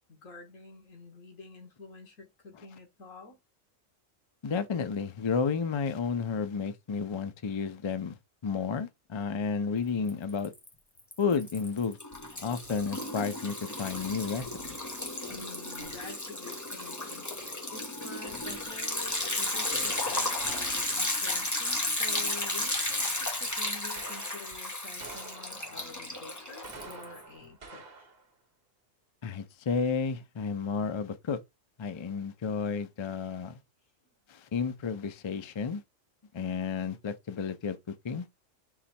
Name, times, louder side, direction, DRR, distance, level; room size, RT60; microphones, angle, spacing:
voice 1, 0.1-3.4 15.3-28.1, left 2 dB, 85° left, 1.8 m, -48 dB
voice 2, 4.4-8.2 8.4-10.5 11.2-12.0 12.4-14.5 29.2-31.4 31.8-33.6 34.3-35.8 36.3-37.8 38.0-38.3, left 5 dB, 50° left, 0.3 m, -31 dB
Liquid, 10.1-10.7 11.0-27.2, left 2 dB, 15° left, 0.9 m, -33 dB
sound 1, 22.9-23.3 24.0-24.5 25.0-25.9 26.5-28.3, right 3 dB, 50° right, 1.1 m, -48 dB
4.0 x 3.1 x 4.3 m
omnidirectional pair, 1.3 m